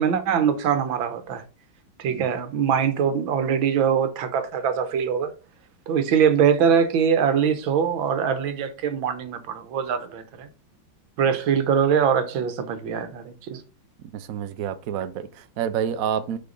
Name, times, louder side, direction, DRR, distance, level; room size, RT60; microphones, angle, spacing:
voice 1, 0.0-1.4 2.0-5.3 5.9-10.5 11.2-13.6, right 7 dB, 85° right, 1.7 m, -23 dB
voice 2, 14.0-16.4, right 8 dB, 65° right, 0.8 m, -29 dB
6.7 x 4.6 x 3.9 m
omnidirectional pair, 2.1 m